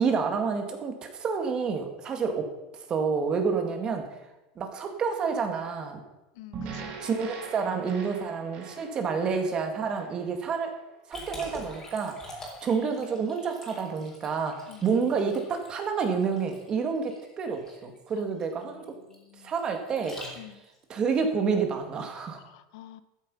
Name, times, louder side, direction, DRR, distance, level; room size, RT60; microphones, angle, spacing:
voice 1, 0.0-2.5 2.9-4.0 4.6-6.0 7.0-10.7 11.1-12.2 12.6-18.9 19.4-20.2 20.9-22.4, right 5 dB, 30° right, 5 dB, 2.1 m, -29 dB
voice 2, 6.4-7.1 14.7-14.8 19.1-19.5 20.4-20.6 22.4-23.0, left 13 dB, 70° left, 14 dB, 0.8 m, -48 dB
sound 1, 6.5-10.8, right 5 dB, 45° right, 3.0 m, -42 dB
Liquid, 11.1-20.8, left 1 dB, 15° left, 3.9 m, -46 dB
13.5 x 9.4 x 5.6 m, 1.0 s
supercardioid pair, 150°, 3 cm